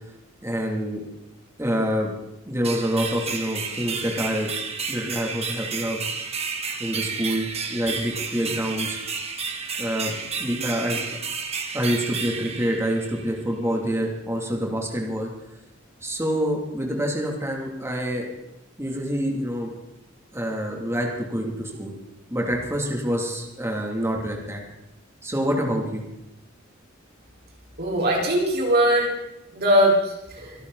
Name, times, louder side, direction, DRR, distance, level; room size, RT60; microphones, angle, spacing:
voice 1, 0.4-1.1 1.6-2.1 2.4-4.5 4.9-6.0 6.8-9.0 9.8-10.1 10.4-11.0 11.7-15.3 16.0-18.3 18.8-19.7 20.3-21.9 22.3-24.6 25.2-26.0, equal, 15° right, -1 dB, 2.9 m, -26 dB
sound 1, 2.6-13.3, right 5 dB, 30° right, 1.7 m, -31 dB
voice 2, 27.8-29.1 29.5-30.5, equal, 50° right, -2 dB, 4.8 m, -20 dB
25.0 x 13.0 x 4.2 m, 0.88 s
head